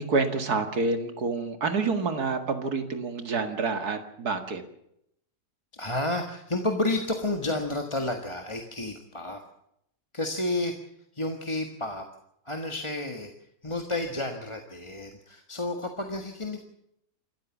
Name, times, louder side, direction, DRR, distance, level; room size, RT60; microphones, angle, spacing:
voice 1, 0.0-4.6, right 4 dB, 85° right, 8 dB, 2.5 m, -28 dB
voice 2, 5.7-9.4 10.1-10.7 11.1-12.0 12.4-16.6, left 2 dB, 20° left, 4 dB, 1.7 m, -31 dB
27.5 x 14.0 x 7.3 m, 0.76 s
omnidirectional pair, 1.6 m